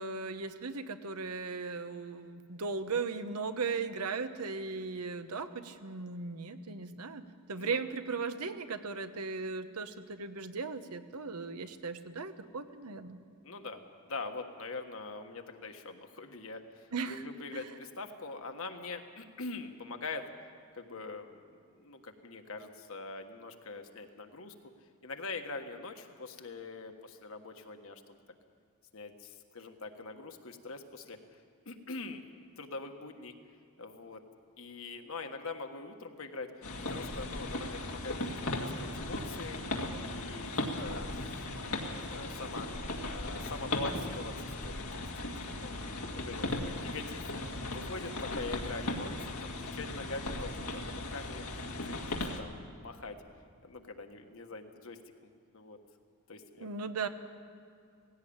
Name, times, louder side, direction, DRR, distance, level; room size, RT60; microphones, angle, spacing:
voice 1, 0.0-13.2 16.9-17.2 17.5-17.7 56.6-57.1, right 4 dB, 90° right, 9 dB, 1.1 m, -37 dB
voice 2, 13.4-20.3 20.7-21.4 21.7-24.7 25.0-28.2 28.9-32.2 32.6-33.3 33.8-34.2 34.6-36.5 36.9-39.6 40.0-41.1 41.9-42.7 43.1-45.1 45.5-45.7 46.2-47.3 47.7-51.5 51.8-53.2 53.6-55.8 56.3-56.7, left 3 dB, 65° left, 5 dB, 1.5 m, -43 dB
sound 1, 36.6-52.4, left 2 dB, 90° left, 2.1 m, -37 dB
18.0 x 16.5 x 8.7 m, 2.4 s
head